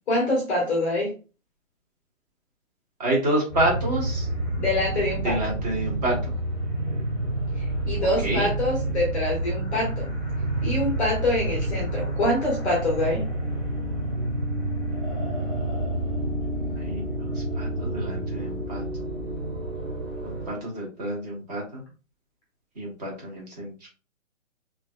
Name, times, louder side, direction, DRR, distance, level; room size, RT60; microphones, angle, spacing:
voice 1, 0.1-1.1 4.6-5.5 7.6-10.1 10.6-13.2, left 1 dB, 5° left, -3 dB, 0.7 m, -25 dB
voice 2, 3.0-4.3 5.2-6.3 8.2-8.5 16.8-18.8 20.5-21.8 22.8-23.7, right 1 dB, 30° right, -2 dB, 1.7 m, -28 dB
sound 1, 3.5-20.5, right 1 dB, 15° right, 1.2 m, -29 dB
5.3 x 2.8 x 2.3 m, 0.33 s
hypercardioid pair, 160°, 39 cm